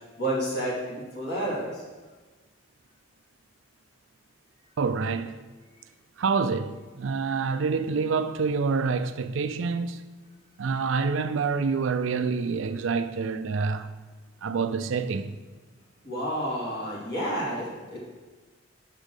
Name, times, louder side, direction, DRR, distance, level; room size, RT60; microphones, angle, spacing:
voice 1, 0.2-1.8 16.0-18.0, right 1 dB, 50° left, 2.5 m, -30 dB
voice 2, 4.8-5.4 6.2-10.0 10.6-13.9 14.4-15.3, right 5 dB, 70° right, 0.4 m, -27 dB
6.4 x 5.1 x 6.4 m
head